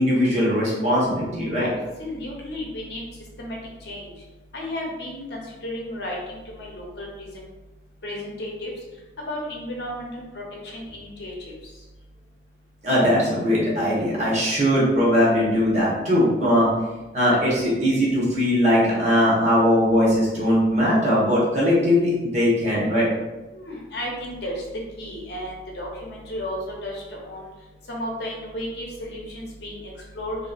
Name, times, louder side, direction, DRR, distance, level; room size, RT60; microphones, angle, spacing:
voice 1, 0.0-1.7 12.8-16.7 17.1-23.1, equal, 40° right, -7 dB, 0.9 m, -20 dB
voice 2, 2.0-3.0 3.4-3.6 3.8-4.1 4.5-7.5 8.0-8.7 9.3-11.3 23.5-24.6 25.0-27.5 27.9-30.4, left 1 dB, 65° left, -2 dB, 0.7 m, -33 dB
2.7 x 2.6 x 2.4 m, 1.1 s
head